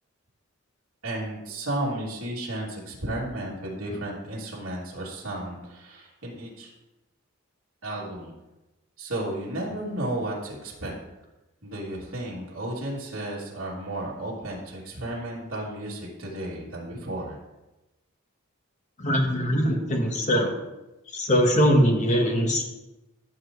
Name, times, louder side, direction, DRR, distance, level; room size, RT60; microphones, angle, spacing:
voice 1, 1.0-6.7 7.8-8.3 9.0-11.0 11.6-17.4, right 1 dB, 70° right, -5 dB, 3.0 m, -33 dB
voice 2, 19.0-20.5 21.1-22.6, equal, 35° left, 2 dB, 1.5 m, -22 dB
14.5 x 7.4 x 3.2 m, 1.0 s
head